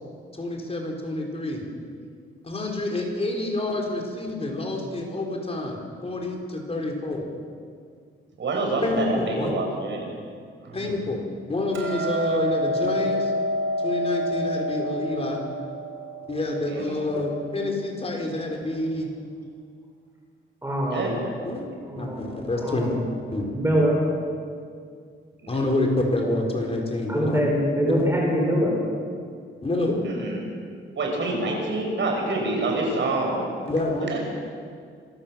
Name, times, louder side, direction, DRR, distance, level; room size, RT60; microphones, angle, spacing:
voice 1, 0.4-1.6 2.4-7.2 8.8-9.5 10.7-11.2 11.5-13.3 13.8-15.4 16.3-19.1 21.4-21.7 22.0-23.0 23.3-23.5 25.5-27.4 27.9-28.1 29.6-30.0 33.7-34.1, left 2 dB, 30° left, 1 dB, 4.7 m, -27 dB
voice 2, 8.4-10.1 10.6-10.9 16.7-17.0 20.9-21.2 25.4-25.6 30.0-30.4 30.9-33.4 34.0-34.2, right 2 dB, 60° right, 0 dB, 6.6 m, -27 dB
Hammer, 11.7-18.0, equal, 75° right, 4.7 m, -28 dB
voice 3, 20.6-21.2 21.8-22.2 22.6-23.1 23.5-24.0 27.1-28.8, equal, 10° right, -2 dB, 4.8 m, -24 dB
26.0 x 13.5 x 7.7 m, 2.1 s
cardioid pair, 110°, 21 cm